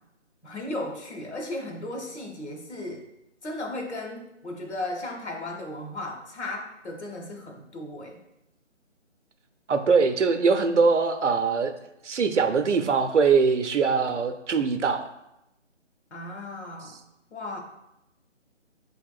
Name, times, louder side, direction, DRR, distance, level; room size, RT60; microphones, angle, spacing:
voice 1, 0.4-3.1 3.4-8.2 16.1-17.0 17.3-17.6, left 1 dB, 65° left, 2 dB, 1.1 m, -35 dB
voice 2, 9.7-11.7 12.0-15.1, right 5 dB, 70° right, 7 dB, 0.6 m, -22 dB
5.5 x 3.5 x 2.3 m, 0.86 s
figure-of-eight pair, 165°, 37 cm